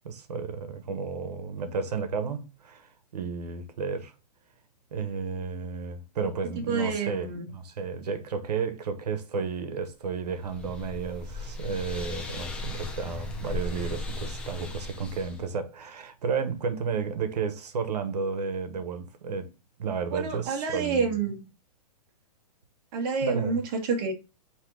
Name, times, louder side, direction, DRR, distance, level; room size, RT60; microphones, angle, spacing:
voice 1, 0.0-4.1 4.9-19.5 19.8-21.1 23.2-23.6, right 5 dB, 85° right, 1.0 m, -32 dB
voice 2, 6.7-7.4 20.1-21.4 22.9-24.1, right 5 dB, 35° right, 1.3 m, -28 dB
sound 1, 10.1-15.5, left 2 dB, 5° left, 0.4 m, -37 dB
4.5 x 2.9 x 3.7 m
hypercardioid pair, 160°, 20 cm